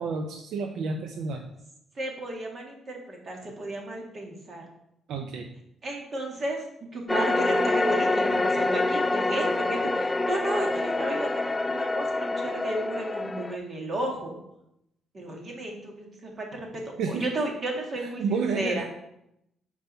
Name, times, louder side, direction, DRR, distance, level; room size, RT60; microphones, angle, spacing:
voice 1, 0.0-1.4 5.1-5.5 17.0-17.2 18.2-18.8, right 4 dB, 75° right, 4 dB, 0.6 m, -30 dB
voice 2, 2.0-4.6 5.8-6.6 6.9-14.3 15.1-18.9, right 1 dB, 40° right, 0 dB, 1.9 m, -33 dB
sound 1, 7.1-13.6, left 2 dB, 20° left, 0.3 m, -26 dB
5.4 x 4.6 x 5.5 m, 0.80 s
cardioid pair, 90°, 0 cm